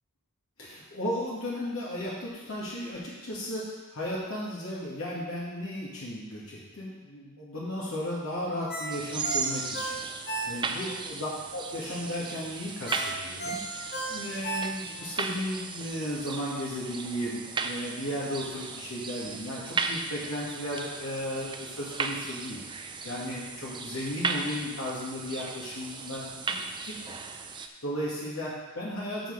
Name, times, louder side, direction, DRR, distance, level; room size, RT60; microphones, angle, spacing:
voice 1, 0.6-13.6 14.1-22.6 23.0-27.2 27.5-29.3, left 1 dB, 75° left, -7 dB, 2.1 m, -35 dB
Ringtone, 8.7-10.9 11.3-11.4 12.9-15.1 15.5-15.6, right 2 dB, 50° left, 1.8 m, -35 dB
sound 1, 8.9-27.7, right 4 dB, 20° right, 0.4 m, -36 dB
6.6 x 6.5 x 6.6 m, 1.3 s
head